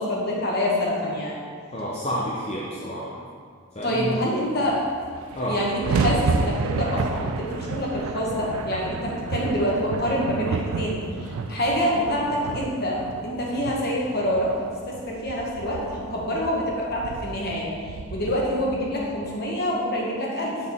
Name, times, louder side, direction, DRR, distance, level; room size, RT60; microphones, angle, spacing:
voice 1, 0.0-1.4 3.8-4.8 5.4-14.5 14.9-20.6, equal, 45° left, -3 dB, 1.1 m, -26 dB
voice 2, 1.7-3.1 3.8-4.2 5.3-5.6, equal, 30° left, -6 dB, 0.6 m, -29 dB
sound 1, 4.7-4.8 4.9-19.3, right 4 dB, 75° right, 0.3 m, -31 dB
7.4 x 4.2 x 3.6 m, 2.1 s
head